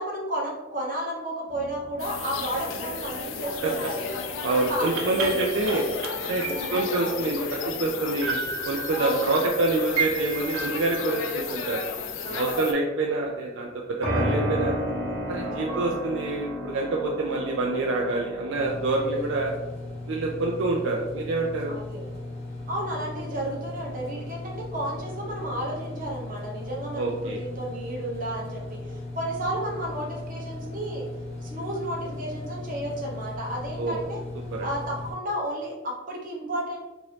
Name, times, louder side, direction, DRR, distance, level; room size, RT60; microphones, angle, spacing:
voice 1, 0.0-4.1 4.5-6.0 6.4-6.8 8.9-9.6 11.5-11.7 12.2-12.7 15.4-16.0 19.0-19.3 21.7-22.1 22.7-31.1 31.4-34.2 34.6-36.8, right 1 dB, 45° right, -3 dB, 0.8 m, -32 dB
sound 1, 1.5-13.1 14.0-18.8, right 1 dB, 85° right, 0.8 m, -34 dB
sound 2, 2.0-12.7, left 5 dB, 75° left, 0.4 m, -33 dB
voice 2, 4.4-5.8 6.2-7.4 7.7-8.4 8.6-11.8 12.3-13.7 14.0-14.8 15.3-19.5 20.1-21.7 27.0-27.4 33.8-34.0 34.5-34.7, right 2 dB, 70° right, -1 dB, 0.4 m, -26 dB
sound 3, 18.5-35.1, left 2 dB, 35° left, 0.7 m, -37 dB
2.9 x 2.6 x 3.2 m, 1.1 s
head